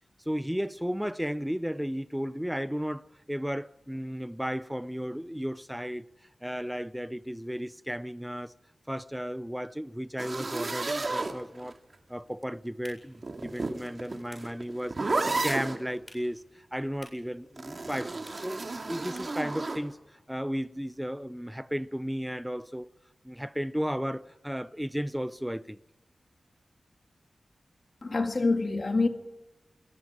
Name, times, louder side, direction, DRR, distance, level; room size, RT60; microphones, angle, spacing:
voice 1, 0.3-6.0 6.4-8.5 8.9-11.8 12.1-18.6 18.9-22.9 23.2-25.8, equal, 5° right, 0.7 m, -34 dB
sound 1, 10.2-11.9 13.1-15.8 17.6-19.8, right 3 dB, 45° right, 2.4 m, -32 dB
sound 2, 12.7-19.5, left 1 dB, 15° left, 7.7 m, -58 dB
voice 2, 28.0-29.1, left 3 dB, 45° left, 2.1 m, -26 dB
28.0 x 21.5 x 5.0 m
wide cardioid pair, 95°, 0 cm